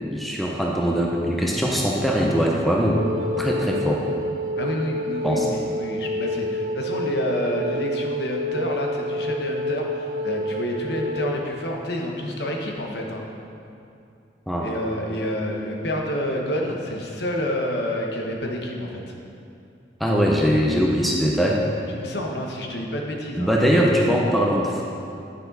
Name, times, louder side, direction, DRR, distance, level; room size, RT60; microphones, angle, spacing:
voice 1, 0.0-3.1 3.4-4.0 5.2-5.5 14.5-14.7 20.0-21.6 23.3-24.8, equal, ahead, -2 dB, 0.7 m, -21 dB
Wind instrument woodwind instrument, 2.9-11.4, equal, 70° right, 0.7 m, -28 dB
voice 2, 4.6-13.2 14.6-19.0 21.9-23.8, left 1 dB, 65° left, 0 dB, 1.1 m, -28 dB
9.9 x 6.7 x 4.0 m, 2.5 s
head